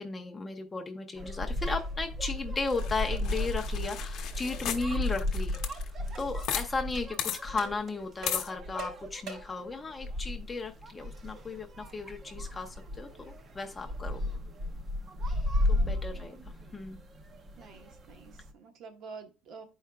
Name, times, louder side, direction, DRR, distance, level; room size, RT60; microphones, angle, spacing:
voice 1, 0.0-5.6 6.2-14.3 15.7-17.0, left 3 dB, 15° left, 4 dB, 0.5 m, -35 dB
sound 1, 1.2-18.5, left 1 dB, 30° right, 0.5 m, -35 dB
sound 2, 2.7-6.7 6.9-7.0 7.2-7.4 8.3-8.5, left 9 dB, 60° left, 0.7 m, -35 dB
sound 3, 4.9-5.0 5.5-5.7 6.1-6.3 6.9-7.1 7.6-7.8 8.2-9.6, right 3 dB, 75° right, 3.3 m, -43 dB
voice 2, 15.6-16.4 17.6-19.7, right 5 dB, 55° right, 6 dB, 1.0 m, -49 dB
11.5 x 4.7 x 2.2 m, 0.32 s
cardioid pair, 165°, 0 cm